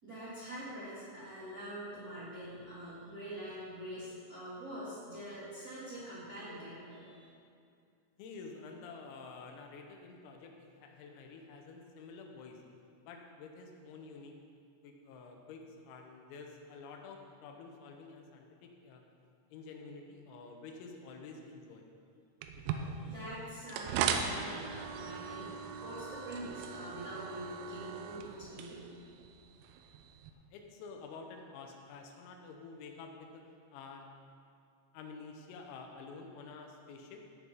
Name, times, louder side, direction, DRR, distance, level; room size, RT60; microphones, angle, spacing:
voice 1, 0.0-7.3 23.0-28.8, equal, 25° right, -13 dB, 2.5 m, -45 dB
voice 2, 8.2-12.6 13.1-14.4 14.8-19.0 19.5-21.9 22.7-23.1 30.5-33.4 33.7-34.1 34.9-37.2, left 4 dB, 85° left, 2 dB, 3.7 m, -49 dB
sound 1, 22.4-30.3, right 7 dB, 80° right, 2.9 m, -39 dB
14.5 x 7.6 x 4.0 m, 2.4 s
omnidirectional pair, 5.9 m